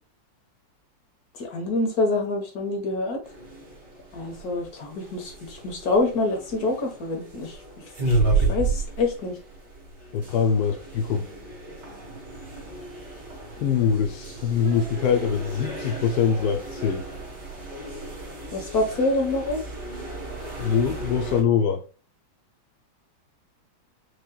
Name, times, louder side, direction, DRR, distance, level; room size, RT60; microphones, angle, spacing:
voice 1, 1.4-3.2 4.1-7.6 8.1-9.4 18.5-19.6, left 2 dB, 50° left, 1.7 m, -26 dB
sound 1, 3.2-21.4, right 3 dB, 50° right, 2.7 m, -32 dB
voice 2, 10.1-11.3 13.6-17.1 20.6-21.8, left 7 dB, 70° left, 1.0 m, -23 dB
6.6 x 3.2 x 2.3 m
omnidirectional pair, 2.2 m